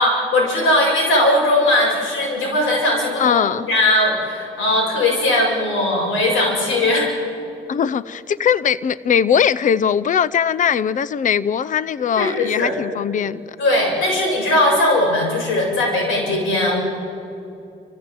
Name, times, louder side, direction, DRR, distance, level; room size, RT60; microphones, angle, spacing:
voice 1, 0.0-7.1 12.2-12.7 13.6-16.8, left 1 dB, 80° left, -1 dB, 7.4 m, -19 dB
voice 2, 3.2-3.7 7.7-13.5, left 8 dB, 40° left, 19 dB, 0.6 m, -20 dB
29.0 x 14.5 x 9.1 m, 2.7 s
cardioid pair, 90°, 20 cm